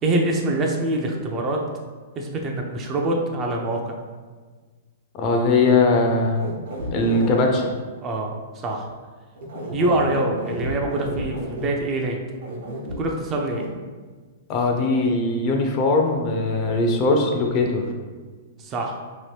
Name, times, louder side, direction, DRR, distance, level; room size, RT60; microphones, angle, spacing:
voice 1, 0.0-1.6 2.2-4.0 8.0-8.9 9.7-12.2 13.0-13.6 18.6-19.0, right 2 dB, 30° right, 1 dB, 0.4 m, -25 dB
voice 2, 5.1-6.4 6.9-7.7 14.5-17.8, left 3 dB, 35° left, 2 dB, 0.5 m, -20 dB
sound 1, 6.1-7.3 9.4-11.7 12.4-13.0 13.5-13.7, right 1 dB, 70° right, 0.8 m, -31 dB
2.9 x 2.1 x 3.2 m, 1.4 s
hypercardioid pair, 130°, 0 cm